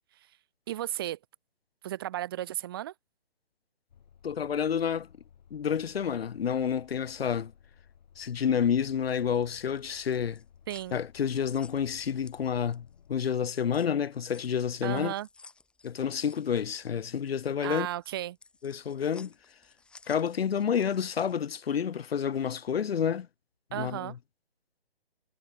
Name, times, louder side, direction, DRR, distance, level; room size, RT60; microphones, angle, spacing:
voice 1, 0.7-1.2 1.8-2.9 10.7-11.0 14.8-15.3 17.6-18.4 23.7-24.1, right 13 dB, 25° right, 1.4 m, -34 dB
sound 1, 3.9-13.2, left 8 dB, 45° left, 7.0 m, -58 dB
voice 2, 4.2-5.1 5.5-7.5 8.2-10.4 10.9-15.1 15.8-17.9 18.6-19.3 20.1-23.3 23.7-24.1, left 8 dB, 75° left, 0.6 m, -29 dB
sound 2, 9.0-13.0 13.3-21.5, left 4 dB, 5° left, 2.2 m, -57 dB
hypercardioid pair, 160°, 30 cm